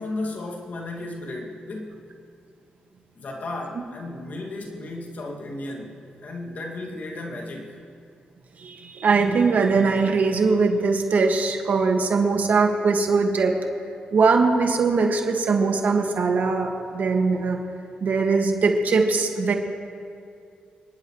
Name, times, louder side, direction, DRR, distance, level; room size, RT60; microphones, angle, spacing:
voice 1, 0.0-2.0 3.1-7.8, left 2 dB, 55° left, -1 dB, 2.3 m, -34 dB
voice 2, 8.6-13.6 14.1-17.6 18.0-19.5, right 4 dB, 60° right, 2 dB, 1.9 m, -21 dB
30.0 x 10.5 x 3.3 m, 2.4 s
cardioid pair, 85°, 3 cm